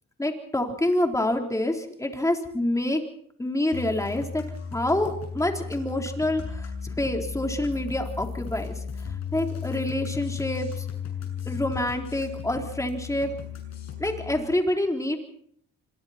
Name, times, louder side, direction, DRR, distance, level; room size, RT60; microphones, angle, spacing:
voice 1, 0.2-3.0 3.4-4.4 4.7-8.7 9.3-10.8 11.5-13.3 14.0-15.2, left 1 dB, 10° left, 3 dB, 4.1 m, -27 dB
sound 1, 3.7-14.4, left 7 dB, 60° left, 7.4 m, -35 dB
26.5 x 23.5 x 4.5 m, 0.67 s
cardioid pair, 90°, 30 cm